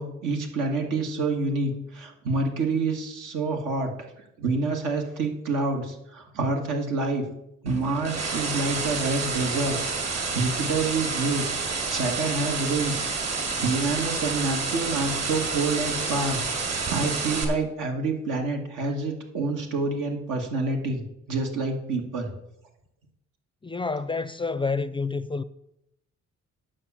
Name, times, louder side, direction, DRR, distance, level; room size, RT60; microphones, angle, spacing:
voice 1, 0.0-3.9 4.4-7.2 7.6-9.8 10.0-11.5 11.9-22.3, right 3 dB, 90° right, 2.1 m, -28 dB
sound 1, 7.7-17.4, right 4 dB, 55° right, 2.6 m, -29 dB
voice 2, 23.6-25.4, left 4 dB, 15° left, 0.4 m, -28 dB
9.8 x 5.7 x 7.4 m
cardioid pair, 90°, 30 cm